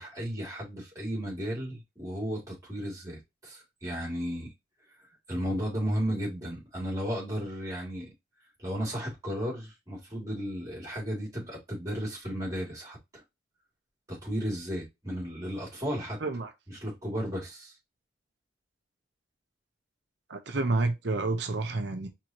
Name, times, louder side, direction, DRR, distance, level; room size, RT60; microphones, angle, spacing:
voice 1, 0.0-4.5 5.3-8.1 8.6-13.0 14.1-16.2 16.7-17.7, equal, 15° right, 2.7 m, -34 dB
voice 2, 16.2-16.5 20.3-22.1, right 3 dB, 65° right, 0.7 m, -29 dB
4.5 x 3.7 x 2.9 m
head